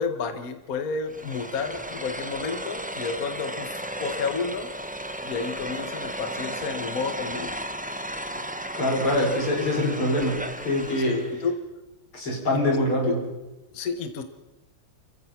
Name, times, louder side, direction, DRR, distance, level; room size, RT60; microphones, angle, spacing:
voice 1, 0.0-4.7 5.2-7.6 11.1-11.5 12.6-12.7 13.0-13.2 13.7-14.2, left 5 dB, 45° left, 8 dB, 1.7 m, -31 dB
sound 1, 1.1-11.4, right 1 dB, 10° right, 0.4 m, -34 dB
voice 2, 8.3-11.2 12.1-13.2, left 1 dB, 90° left, -1 dB, 6.5 m, -25 dB
29.5 x 15.0 x 6.0 m, 1.0 s
omnidirectional pair, 2.3 m